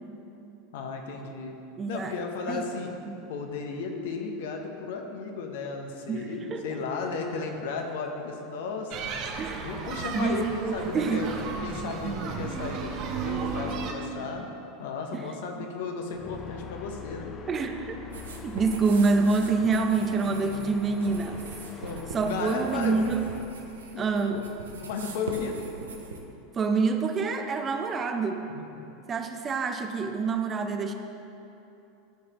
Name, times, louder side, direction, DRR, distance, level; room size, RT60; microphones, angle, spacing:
voice 1, 0.7-1.6 1.9-2.9 3.3-11.3 11.6-14.5 14.8-17.3 20.3-20.7 21.8-22.0 22.2-23.0 23.9-24.5 24.8-25.6 28.4-28.9, left 4 dB, 70° left, 3 dB, 0.9 m, -35 dB
voice 2, 1.8-2.2 2.5-2.7 3.0-3.3 6.1-6.8 9.4-11.2 15.1-15.2 15.5-15.7 17.5-18.0 18.4-21.4 22.1-23.2 24.0-24.4 26.5-28.4 29.1-30.9, right 4 dB, 30° right, 6 dB, 0.6 m, -27 dB
sound 1, 8.9-13.9, right 5 dB, 50° right, 0.9 m, -34 dB
sound 2, 16.1-23.4, left 5 dB, 30° left, 0.7 m, -43 dB
sound 3, 18.1-26.2, right 3 dB, 90° right, 0.8 m, -42 dB
13.0 x 5.0 x 3.0 m, 2.8 s
hypercardioid pair, 95°, 0 cm